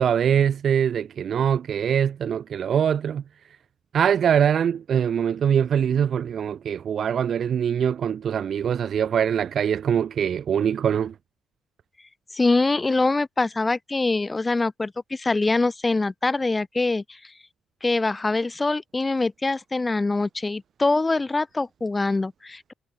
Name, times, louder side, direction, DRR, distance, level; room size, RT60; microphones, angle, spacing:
voice 1, 0.0-3.2 3.9-11.1, right 8 dB, 40° right, 1.7 m, -23 dB
voice 2, 12.3-17.2 17.8-22.7, left 3 dB, 15° left, 6.0 m, -24 dB
cardioid pair, 170°, 0 cm